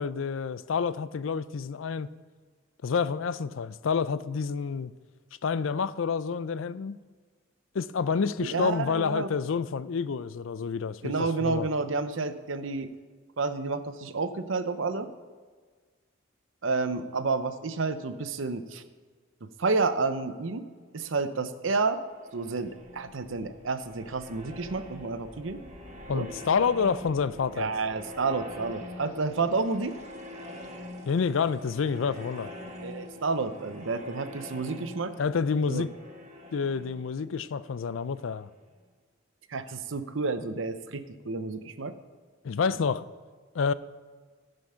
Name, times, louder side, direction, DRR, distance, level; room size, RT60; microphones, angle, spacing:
voice 1, 0.0-2.1 2.8-4.9 5.4-7.0 7.7-11.7 26.1-27.7 31.1-32.5 35.2-35.9 36.5-38.5 42.4-43.0 43.5-43.7, left 5 dB, 80° left, 0.4 m, -28 dB
voice 2, 8.4-9.3 11.0-12.9 13.4-15.1 16.6-18.8 19.4-20.7 20.9-22.0 22.3-25.6 26.1-26.3 27.5-29.9 32.8-35.1 35.7-35.8 39.5-41.9, right 3 dB, 75° right, 0.7 m, -30 dB
sound 1, 22.0-38.6, left 1 dB, 35° right, 1.6 m, -45 dB
15.5 x 5.3 x 5.6 m
head